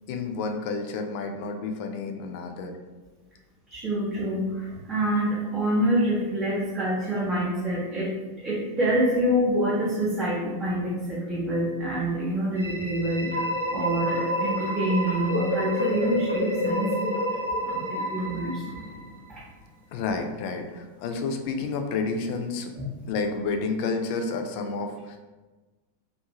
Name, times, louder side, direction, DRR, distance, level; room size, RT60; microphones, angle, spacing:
voice 1, 0.1-2.7 19.9-22.7 23.1-25.2, left 4 dB, 45° left, 5 dB, 0.3 m, -30 dB
voice 2, 3.7-4.5 4.9-8.1 8.4-13.3 13.7-17.2 17.7-18.5, right 1 dB, 15° right, -7 dB, 0.6 m, -26 dB
sound 1, 12.5-19.3, equal, 85° left, 0.6 m, -29 dB
2.5 x 2.3 x 2.9 m, 1.2 s
figure-of-eight pair, 90°, 0 cm